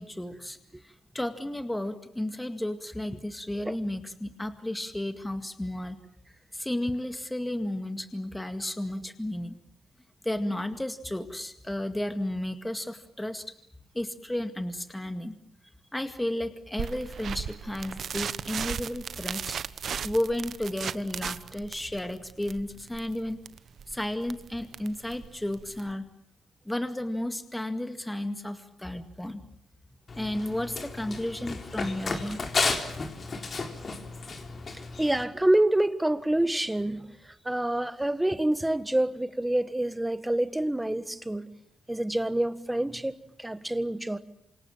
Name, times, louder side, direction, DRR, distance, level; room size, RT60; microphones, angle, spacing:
voice 1, 0.0-6.0 6.5-9.6 10.2-13.6 13.9-15.4 15.9-19.6 20.0-23.4 23.9-26.1 26.7-29.5 30.2-32.4, left 1 dB, 10° left, 2.1 m, -33 dB
sound 1, 16.8-25.9, right 7 dB, 60° right, 1.1 m, -37 dB
Run, 30.1-35.2, left 4 dB, 40° left, 3.8 m, -33 dB
voice 2, 34.7-41.5 41.9-44.2, right 1 dB, 10° right, 1.6 m, -27 dB
28.0 x 26.5 x 7.4 m
cardioid pair, 90°, 0 cm